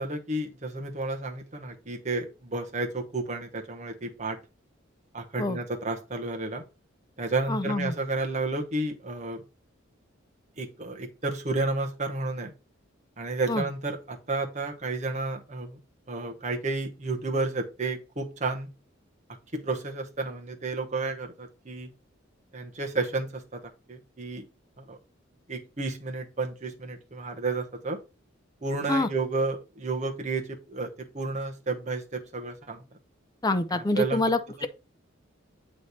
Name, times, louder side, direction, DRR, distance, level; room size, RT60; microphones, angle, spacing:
voice 1, 0.0-4.4 5.1-6.6 7.2-9.4 10.6-12.5 13.2-15.8 16.1-18.7 19.6-21.9 22.5-23.6 23.9-24.4 24.8-25.0 25.5-28.0 28.6-30.9 31.1-32.8 33.7-34.2 34.6-34.7, right 3 dB, 35° right, 1.0 m, -31 dB
voice 2, 7.5-7.9 13.5-13.6 28.9-29.1 33.4-34.7, left 2 dB, 20° left, 0.5 m, -26 dB
8.1 x 3.2 x 4.1 m
head